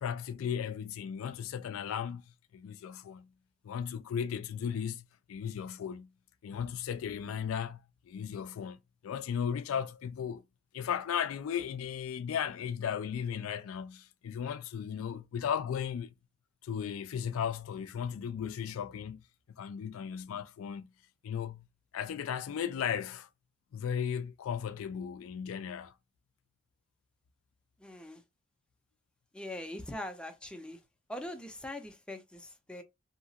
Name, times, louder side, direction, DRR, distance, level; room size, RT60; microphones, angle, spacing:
voice 1, 0.0-2.2 2.5-3.3 3.6-6.1 6.4-8.8 9.0-10.4 10.7-16.1 16.6-19.2 19.6-20.9 21.2-21.7 21.9-23.3 23.7-25.9, left 8 dB, 75° left, 0.3 m, -36 dB
voice 2, 27.8-28.2 29.3-30.8 31.1-32.8, left 1 dB, 5° left, 0.5 m, -42 dB
2.8 x 2.3 x 2.8 m
head